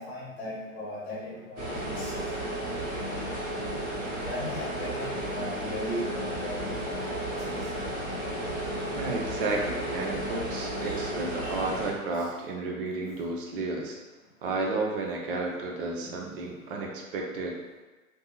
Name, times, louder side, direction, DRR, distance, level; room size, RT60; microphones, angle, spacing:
voice 1, 0.0-2.4 4.2-6.8 7.1-7.2 7.5-7.6 10.8-10.9 11.4-11.6 16.0-16.2, left 1 dB, 50° left, -7 dB, 1.2 m, -38 dB
sound 1, 1.6-11.9, right 1 dB, 25° right, 0.9 m, -33 dB
voice 2, 8.9-14.0 14.4-17.6, right 3 dB, 40° right, 0 dB, 0.5 m, -32 dB
2.5 x 2.3 x 2.7 m, 1.2 s
figure-of-eight pair, 100°, 42 cm